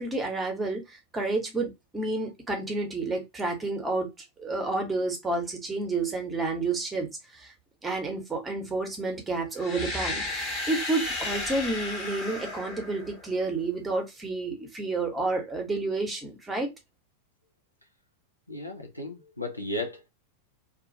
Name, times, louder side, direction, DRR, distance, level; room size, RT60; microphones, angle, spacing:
voice 1, 0.0-4.1 4.4-7.1 7.3-7.5 7.8-16.7, right 3 dB, 15° right, 0.9 m, -30 dB
sound 1, 9.6-13.5, left 2 dB, 25° left, 1.0 m, -34 dB
voice 2, 18.5-20.1, left 1 dB, 85° left, 0.6 m, -35 dB
2.4 x 2.3 x 2.7 m
figure-of-eight pair, 90°, 0 cm